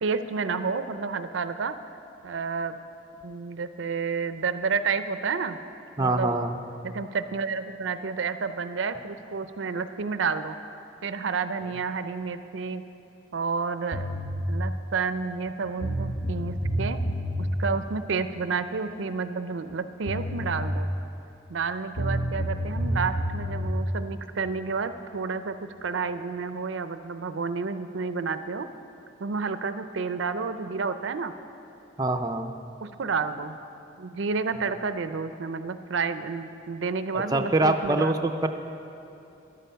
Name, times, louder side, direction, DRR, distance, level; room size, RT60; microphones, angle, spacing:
voice 1, 0.0-1.7 2.2-2.8 3.2-5.6 6.0-6.3 6.8-10.5 11.0-12.8 13.3-14.1 14.5-17.0 17.4-20.9 21.5-28.7 29.2-31.3 32.8-33.6 34.0-38.3, right 5 dB, 75° right, 11 dB, 0.5 m, -30 dB
voice 2, 6.0-6.5 32.0-32.5 37.1-38.5, right 2 dB, 20° right, 5 dB, 0.5 m, -24 dB
sound 1, 13.9-14.4 15.5-15.6 15.8-17.5 19.7-19.8 20.1-20.7 22.0-23.7, equal, 55° left, 1.2 m, -29 dB
13.5 x 11.0 x 5.7 m, 2.8 s
head